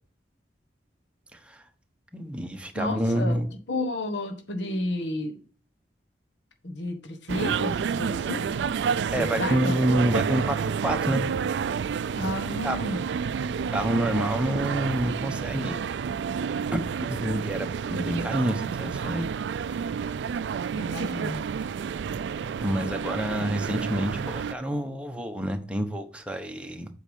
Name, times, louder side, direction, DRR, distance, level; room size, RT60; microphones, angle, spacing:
voice 1, 1.3-1.6 2.1-3.5 9.1-11.2 12.6-12.8 13.7-15.8 16.7-16.8 17.1-19.3 19.6-19.8 22.6-26.9, right 1 dB, 5° right, 1.0 m, -28 dB
voice 2, 2.7-3.4 3.7-5.4 6.6-8.6 9.2-9.8 12.1-13.1 20.7-21.4, left 1 dB, 90° left, 1.4 m, -31 dB
sound 1, 7.3-24.5, right 6 dB, 75° right, 0.3 m, -29 dB
8.1 x 4.7 x 5.2 m
head